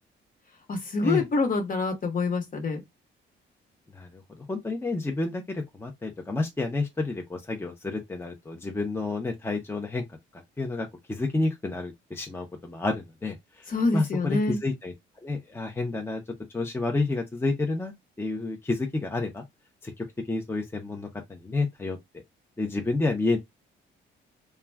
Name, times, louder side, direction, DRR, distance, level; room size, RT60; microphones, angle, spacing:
voice 1, 0.7-2.8 13.7-14.6, left 3 dB, 45° left, 1.0 m, -26 dB
voice 2, 4.5-10.0 10.6-13.6 13.9-14.9 15.2-16.2 16.5-17.9 18.2-19.4 19.8-22.0 22.6-23.4, left 3 dB, 10° left, 0.5 m, -30 dB
2.3 x 2.2 x 3.3 m
cardioid pair, 90°, 20 cm